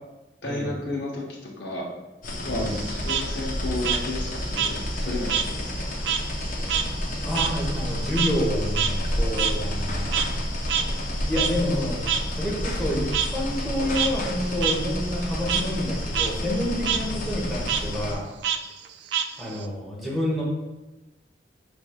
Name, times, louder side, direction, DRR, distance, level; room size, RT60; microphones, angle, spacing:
voice 1, 0.4-1.9 2.4-4.8 5.0-6.0, left 2 dB, 75° left, -2 dB, 1.0 m, -32 dB
sound 1, 2.2-18.1, equal, 50° left, 0.6 m, -30 dB
Frog, 2.6-5.5 5.8-10.4 10.7-10.8 11.3-11.5 12.1-12.2 13.1-13.3 13.8-14.1 14.6-14.7 15.1-15.6 16.0-16.3 16.6-17.0 17.6-17.8 18.4-19.6, right 8 dB, 75° right, 0.3 m, -27 dB
voice 2, 7.2-10.4 11.3-12.0 12.4-18.3 19.4-20.4, left 1 dB, ahead, -6 dB, 1.1 m, -28 dB
5.2 x 3.3 x 2.4 m, 1.0 s
head